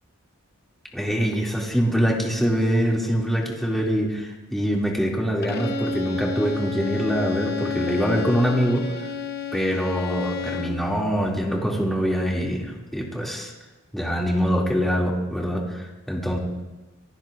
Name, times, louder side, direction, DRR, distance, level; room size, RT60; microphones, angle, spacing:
voice 1, 0.9-8.9 9.5-13.5 13.9-16.4, equal, ahead, -3 dB, 2.4 m, -24 dB
Bowed string instrument, 5.4-10.9, left 5 dB, 50° left, 0.8 m, -30 dB
26.0 x 17.0 x 2.5 m, 1.1 s
head